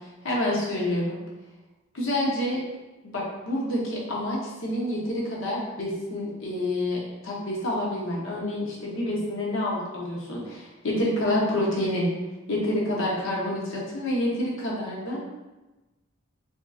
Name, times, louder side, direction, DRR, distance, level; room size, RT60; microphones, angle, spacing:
voice 1, 0.2-1.2 1.9-2.6 3.1-12.1 12.5-15.2, left 1 dB, 60° left, -3 dB, 0.8 m, -28 dB
3.6 x 2.7 x 2.3 m, 1.1 s
head